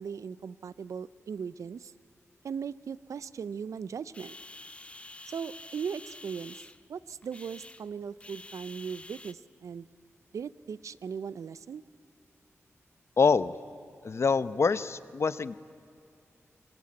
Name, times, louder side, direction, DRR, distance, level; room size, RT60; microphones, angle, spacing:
voice 1, 0.0-1.9 2.4-4.4 5.3-6.6 6.9-9.9 10.3-11.8, right 6 dB, 85° right, 18 dB, 0.6 m, -38 dB
sound 1, 4.1-9.3, left 2 dB, 25° left, 0.8 m, -48 dB
voice 2, 13.2-13.5 14.0-15.6, left 5 dB, 60° left, 15 dB, 0.8 m, -25 dB
26.5 x 21.0 x 8.7 m, 2.5 s
cardioid pair, 70°, 5 cm